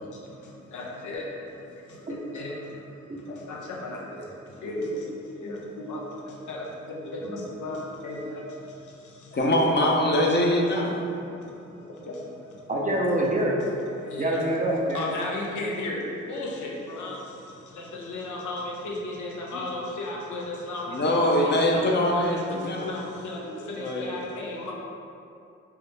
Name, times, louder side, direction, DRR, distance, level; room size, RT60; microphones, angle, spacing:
voice 1, 0.0-9.4 11.2-12.8 13.6-14.4 14.9-24.7, left 2 dB, 75° left, -3 dB, 0.7 m, -36 dB
voice 2, 9.3-11.0 19.5-19.6 20.9-23.0 23.8-24.2, left 1 dB, 35° left, -1 dB, 0.7 m, -23 dB
voice 3, 12.7-13.6 14.2-15.0, right 1 dB, 25° right, -2 dB, 0.6 m, -25 dB
4.7 x 2.1 x 3.2 m, 2.6 s
cardioid pair, 60°, 30 cm